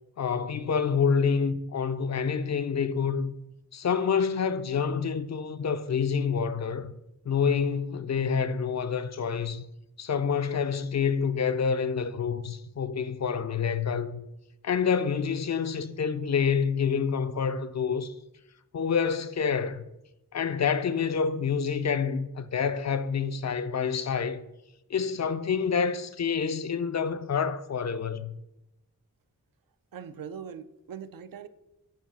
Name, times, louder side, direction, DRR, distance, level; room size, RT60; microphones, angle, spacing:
voice 1, 0.2-3.3 3.7-6.9 7.3-9.7 10.0-14.3 14.6-18.1 18.7-19.8 20.3-24.4 24.9-28.4, left 6 dB, 50° left, 0.4 m, -27 dB
voice 2, 29.9-31.5, right 7 dB, 75° right, 0.5 m, -41 dB
7.2 x 2.7 x 5.5 m
wide cardioid pair, 60°, 34 cm